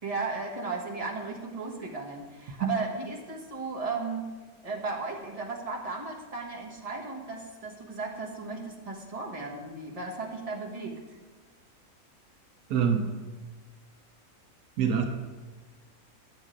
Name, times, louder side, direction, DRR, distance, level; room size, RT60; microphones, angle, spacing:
voice 1, 0.0-4.2 4.6-11.2, right 3 dB, 25° right, -2 dB, 1.6 m, -35 dB
voice 2, 12.7-13.2 14.8-15.0, right 7 dB, 75° right, 4 dB, 1.2 m, -25 dB
11.0 x 8.0 x 3.8 m, 1.3 s
omnidirectional pair, 1.6 m